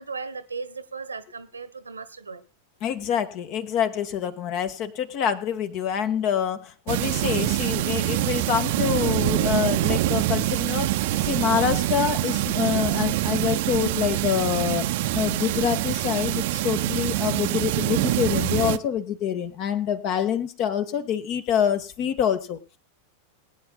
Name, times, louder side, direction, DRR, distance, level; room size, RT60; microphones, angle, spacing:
voice 1, 0.0-2.4, right 4 dB, 75° right, 15 dB, 1.2 m, -36 dB
voice 2, 2.8-10.9 11.2-22.6, left 9 dB, 40° left, 11 dB, 1.5 m, -26 dB
sound 1, 6.9-18.8, right 15 dB, 50° right, 0.8 m, -25 dB
22.0 x 9.3 x 2.3 m, 0.31 s
figure-of-eight pair, 90°, 0 cm